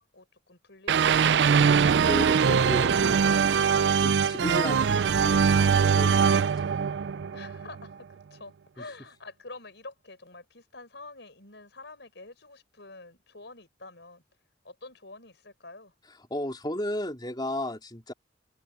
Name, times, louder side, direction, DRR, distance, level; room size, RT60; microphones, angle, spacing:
voice 1, 0.0-1.9 7.3-14.2 14.6-15.9, left 3 dB, 70° left, 6.4 m, -47 dB
sound 1, 0.9-7.8, right 6 dB, 65° right, 0.4 m, -22 dB
voice 2, 2.0-3.6 4.0-6.7 8.8-8.9 16.1-18.1, left 1 dB, 25° left, 4.0 m, -34 dB
open air
head